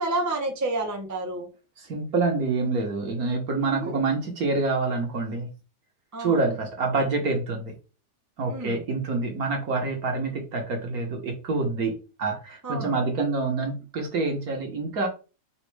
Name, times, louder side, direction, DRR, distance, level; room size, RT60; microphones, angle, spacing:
voice 1, 0.0-1.5 3.6-4.0 6.1-6.4 8.5-8.8 12.6-12.9, right 2 dB, 15° right, 1 dB, 0.6 m, -29 dB
voice 2, 1.8-5.5 6.2-7.7 8.4-15.1, right 3 dB, 60° right, 2 dB, 1.5 m, -27 dB
4.1 x 2.4 x 4.6 m, 0.32 s
omnidirectional pair, 1.8 m